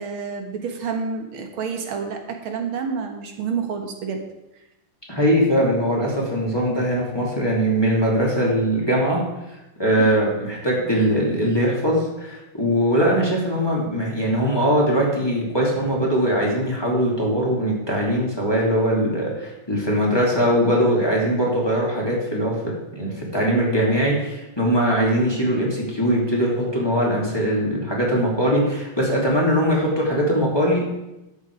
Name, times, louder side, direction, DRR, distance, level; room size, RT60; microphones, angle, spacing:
voice 1, 0.0-4.2 10.0-10.2 25.0-25.1, right 5 dB, 80° right, 4 dB, 2.1 m, -29 dB
voice 2, 5.1-9.2 9.8-22.6 22.9-31.0, equal, 10° left, -5 dB, 3.0 m, -21 dB
12.0 x 8.1 x 4.9 m, 0.95 s
omnidirectional pair, 2.3 m